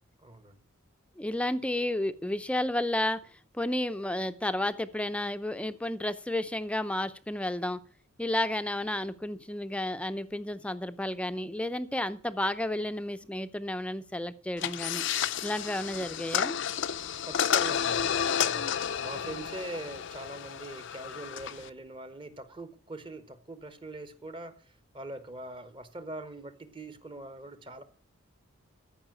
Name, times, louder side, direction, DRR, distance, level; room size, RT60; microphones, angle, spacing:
voice 1, 0.2-0.6 17.3-27.8, right 2 dB, 25° right, 1.0 m, -43 dB
voice 2, 1.2-3.2 3.5-7.8 8.2-15.0 15.4-16.6, left 1 dB, 5° left, 0.5 m, -32 dB
sound 1, 14.6-21.7, left 8 dB, 60° left, 0.5 m, -31 dB
14.0 x 5.6 x 7.6 m
head